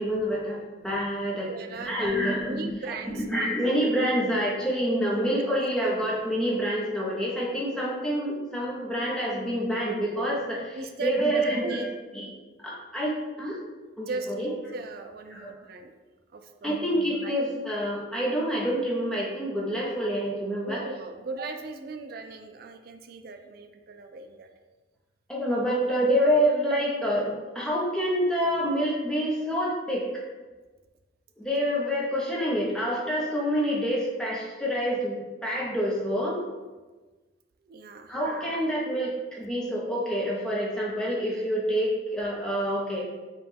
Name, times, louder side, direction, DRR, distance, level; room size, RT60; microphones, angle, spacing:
voice 1, 0.0-1.5 1.8-2.6 3.0-11.9 12.1-12.3 12.6-13.6 14.0-14.5 15.3-15.5 16.6-20.8 25.3-30.3 31.4-36.4 38.1-43.1, equal, 5° left, -5 dB, 0.7 m, -27 dB
voice 2, 1.5-3.5 5.5-5.6 10.7-11.9 14.0-14.5 14.7-15.9 16.3-16.8 17.2-17.3 20.6-24.5 37.6-38.2, right 3 dB, 50° right, 6 dB, 0.3 m, -38 dB
5.1 x 2.3 x 3.3 m, 1.2 s
head